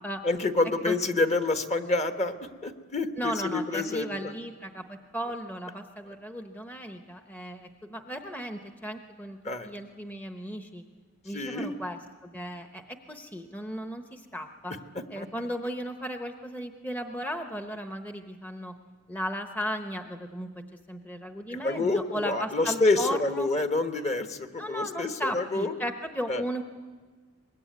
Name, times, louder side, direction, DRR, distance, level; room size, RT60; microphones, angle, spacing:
voice 1, 0.2-4.3 9.4-9.7 11.3-11.8 15.2-15.3 21.5-25.7 26.3-26.4, left 2 dB, 35° left, 7 dB, 1.3 m, -28 dB
voice 2, 3.2-9.4 9.6-10.8 11.2-14.7 15.1-18.8 19.1-20.5 20.9-23.5 24.6-26.6, equal, 10° left, 6 dB, 0.9 m, -35 dB
24.0 x 21.5 x 9.4 m, 1.5 s
head